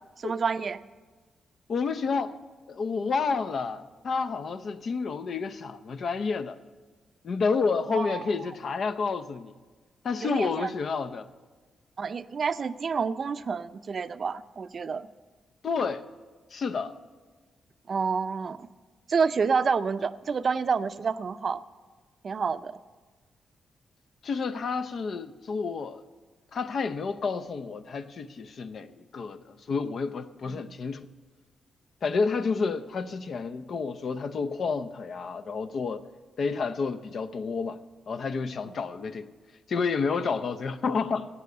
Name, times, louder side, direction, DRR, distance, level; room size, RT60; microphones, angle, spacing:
voice 1, 0.2-0.8 7.9-8.3 10.2-10.7 12.0-15.0 17.9-18.7 19.1-21.6 22.2-22.7 30.5-30.6, right 5 dB, 50° right, 0.5 m, -28 dB
voice 2, 1.7-2.4 2.7-6.6 7.2-9.5 10.0-11.3 15.6-16.0 16.5-17.0 24.2-26.0 26.5-31.1 32.0-36.0 36.4-37.8 38.1-39.3 39.7-41.3, left 4 dB, 60° left, 0.7 m, -30 dB
15.5 x 8.5 x 6.8 m
cardioid pair, 80°, 0 cm